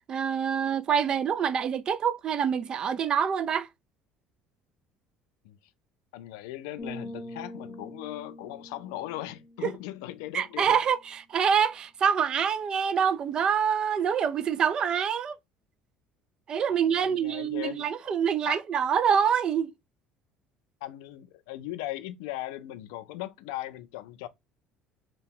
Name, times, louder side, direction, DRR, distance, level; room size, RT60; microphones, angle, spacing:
voice 1, 0.1-3.7 9.6-9.7 10.3-15.4 16.5-19.7, right 7 dB, 40° right, 0.3 m, -26 dB
voice 2, 6.1-10.8 16.7-17.8 18.4-18.6 20.8-24.3, left 15 dB, 90° left, 0.4 m, -38 dB
sound 1, 6.8-10.5, left 1 dB, 30° left, 0.7 m, -44 dB
2.7 x 2.2 x 3.5 m
cardioid pair, 110°, 2 cm